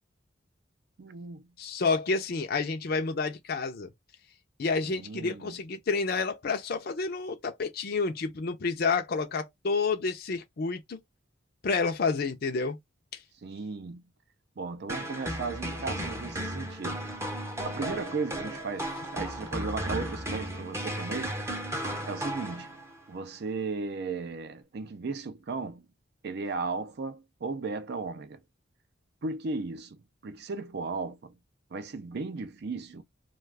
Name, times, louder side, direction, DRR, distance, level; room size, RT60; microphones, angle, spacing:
voice 1, 1.0-1.5 4.8-5.6 13.4-14.0 14.6-17.1 17.6-21.4 22.0-22.7 23.1-25.8 26.2-28.4 29.2-30.0 30.2-31.3 31.7-33.0, right 4 dB, 60° right, 0.5 m, -36 dB
voice 2, 1.6-3.9 4.6-11.0 11.6-12.8, left 4 dB, 55° left, 0.5 m, -29 dB
sound 1, 14.9-23.0, right 1 dB, 15° right, 0.6 m, -35 dB
2.4 x 2.3 x 3.2 m
head